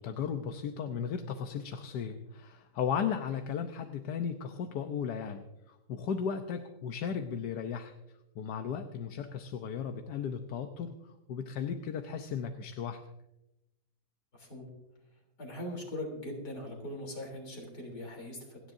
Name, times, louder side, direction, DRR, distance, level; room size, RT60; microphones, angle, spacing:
voice 1, 0.0-7.9 8.3-11.0 11.3-13.0, left 7 dB, 85° left, 6 dB, 1.4 m, -35 dB
voice 2, 14.3-14.7 15.4-18.6, left 1 dB, 70° left, 1 dB, 4.0 m, -41 dB
28.5 x 10.5 x 2.7 m, 0.93 s
omnidirectional pair, 1.7 m